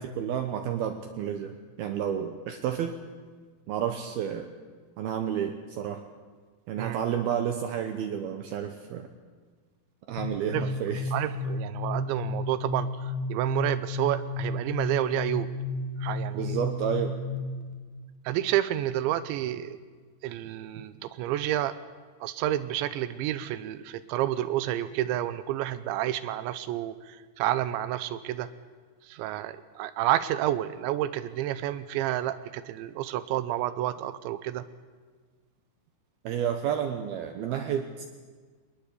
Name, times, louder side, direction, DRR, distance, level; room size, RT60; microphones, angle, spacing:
voice 1, 0.0-3.0 3.7-4.5 5.0-6.0 6.7-9.1 10.1-11.1 16.3-17.2 36.2-38.0, right 9 dB, 70° right, 6 dB, 2.7 m, -31 dB
sound 1, 10.2-17.7, left 3 dB, 55° left, 3.5 m, -33 dB
voice 2, 11.1-15.5 16.0-16.6 18.3-19.8 20.2-21.8 22.2-28.5 29.0-34.6, right 13 dB, 90° right, 13 dB, 3.1 m, -30 dB
22.5 x 20.5 x 8.4 m, 1.5 s
omnidirectional pair, 5.1 m